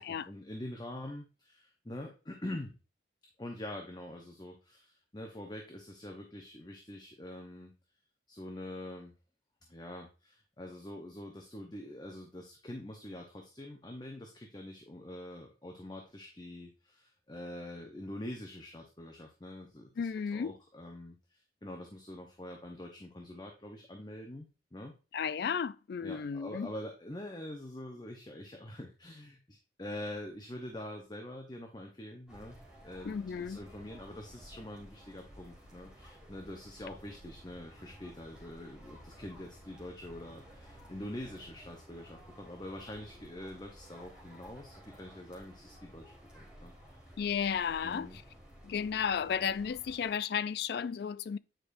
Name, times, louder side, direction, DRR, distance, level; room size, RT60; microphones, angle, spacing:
voice 1, 0.3-2.7 3.4-7.7 8.3-9.1 9.7-24.9 26.0-32.6 32.8-47.0 47.8-48.2, left 1 dB, 20° left, 0.8 m, -45 dB
voice 2, 20.0-20.5 25.1-26.7 33.0-33.6 47.2-48.1 48.6-51.4, left 7 dB, 55° left, 0.3 m, -33 dB
sound 1, 32.3-50.2, equal, 5° right, 1.9 m, -54 dB
9.0 x 4.9 x 2.6 m
head